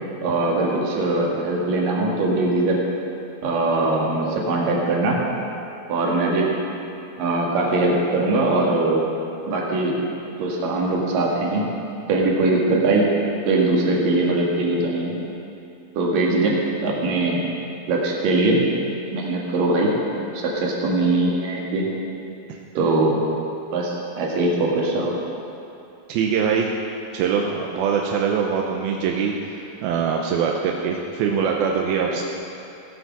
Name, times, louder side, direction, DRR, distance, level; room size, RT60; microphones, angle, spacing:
voice 1, 0.2-2.8 3.4-5.2 5.9-6.5 7.2-9.0 9.5-9.9 10.4-11.7 12.1-13.1 13.4-15.2 15.9-16.5 16.8-17.4 17.9-18.6 19.1-19.9 20.3-21.9 22.7-23.2 23.7-25.1, right 2 dB, 65° right, -2 dB, 3.3 m, -21 dB
voice 2, 26.1-26.7 27.1-32.2, right 6 dB, 85° right, 0 dB, 2.6 m, -23 dB
16.0 x 8.0 x 6.1 m, 2.7 s
omnidirectional pair, 4.3 m